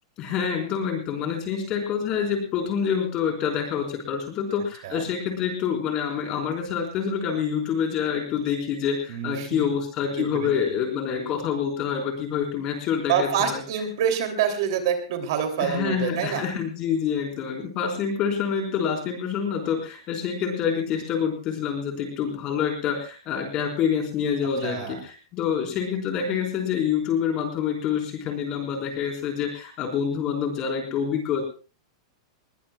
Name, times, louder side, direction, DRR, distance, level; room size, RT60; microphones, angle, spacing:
voice 1, 0.2-13.6 15.6-31.4, left 7 dB, 25° left, 3 dB, 4.4 m, -27 dB
voice 2, 9.1-9.7 10.2-10.8 13.1-16.4 24.6-25.0, right 8 dB, 50° right, 6 dB, 3.0 m, -27 dB
21.0 x 20.0 x 2.4 m, 0.36 s
supercardioid pair, 175°, 3 cm